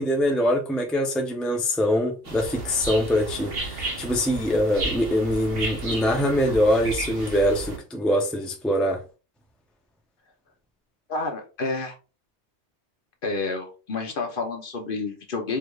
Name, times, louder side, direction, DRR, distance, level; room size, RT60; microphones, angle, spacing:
voice 1, 0.0-9.0, equal, ahead, 0.4 m, -23 dB
sound 1, 2.2-7.8, right 3 dB, 60° right, 1.3 m, -33 dB
voice 2, 11.1-11.9 13.2-15.6, left 3 dB, 55° left, 1.0 m, -29 dB
4.6 x 3.3 x 2.4 m
omnidirectional pair, 1.2 m